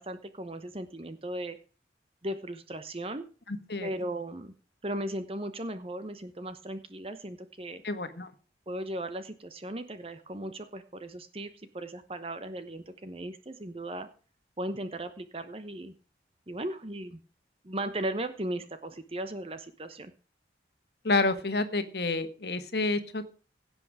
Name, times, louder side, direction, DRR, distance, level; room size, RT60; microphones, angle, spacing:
voice 1, 0.0-1.6 2.2-3.3 3.8-4.5 4.8-7.8 8.7-14.1 14.6-15.9 16.5-17.2 17.6-20.1, right 1 dB, 30° right, 10 dB, 0.9 m, -37 dB
voice 2, 3.5-3.9 7.8-8.3 21.0-23.3, left 3 dB, 60° left, 10 dB, 1.5 m, -29 dB
16.5 x 8.1 x 4.9 m, 0.38 s
head